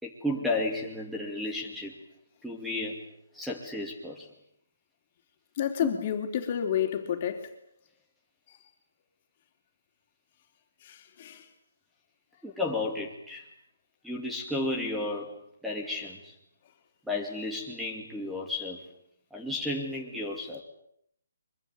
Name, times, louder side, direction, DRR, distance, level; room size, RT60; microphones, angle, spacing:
voice 1, 0.0-1.9 2.4-3.0 3.3-4.3 5.8-5.9 12.4-13.4 14.0-15.3 15.6-16.3 17.1-18.8 19.3-20.6, left 2 dB, ahead, 2.4 m, -33 dB
voice 2, 5.6-7.5 10.8-11.5, left 9 dB, 35° left, 3.5 m, -30 dB
24.5 x 23.0 x 8.9 m
hypercardioid pair, 165°, 0 cm